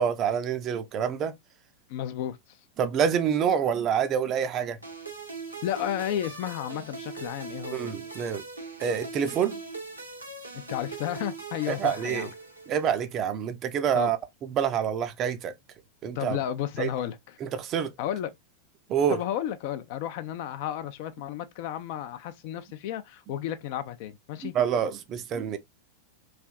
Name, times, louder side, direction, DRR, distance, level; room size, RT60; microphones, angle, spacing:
voice 1, 0.0-1.3 2.8-4.8 7.7-8.4 8.8-9.6 11.7-12.3 12.7-15.5 16.0-16.4 16.8-16.9 17.4-17.9 18.9-19.2 24.5-25.6, right 8 dB, 30° right, 0.4 m, -27 dB
voice 2, 1.9-2.4 5.6-7.8 10.5-12.3 13.9-14.1 16.2-17.2 18.0-18.3 19.1-24.5, left 11 dB, 50° left, 0.4 m, -32 dB
sound 1, 4.8-13.1, right 3 dB, 85° right, 0.9 m, -40 dB
3.2 x 2.5 x 2.2 m
figure-of-eight pair, 90°, 0 cm